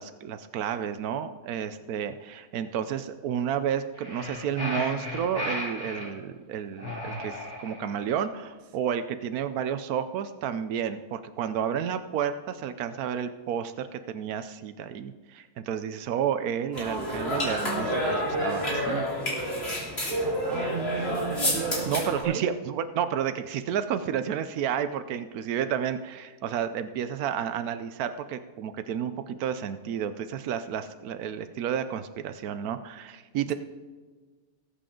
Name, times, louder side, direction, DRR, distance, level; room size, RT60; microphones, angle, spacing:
voice 1, 0.0-19.0 21.9-33.5, right 8 dB, 85° right, 11 dB, 1.1 m, -31 dB
sound 1, 3.9-6.1 6.8-8.0, left 1 dB, 15° left, 2.6 m, -35 dB
sound 2, 16.7-22.2, equal, 45° left, 3.6 m, -29 dB
voice 2, 20.2-22.5, right 7 dB, 60° right, 8 dB, 1.2 m, -34 dB
19.0 x 8.6 x 3.8 m, 1.4 s
omnidirectional pair, 1.5 m